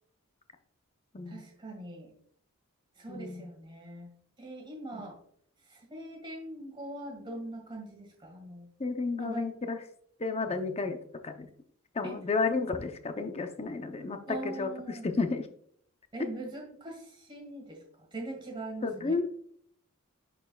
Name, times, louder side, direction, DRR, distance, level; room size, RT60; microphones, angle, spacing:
voice 1, 1.3-2.1 3.0-4.1 4.4-5.2 5.7-8.7 9.1-9.5 12.0-12.2 14.3-15.1 16.1-17.8 18.1-19.2, right 2 dB, 20° right, 1 dB, 1.8 m, -42 dB
voice 2, 3.1-3.5 4.9-5.0 8.8-9.8 10.2-11.5 11.9-14.2 14.4-15.5 18.8-19.2, left 4 dB, 30° left, 6 dB, 0.6 m, -32 dB
11.0 x 4.6 x 2.3 m, 0.63 s
head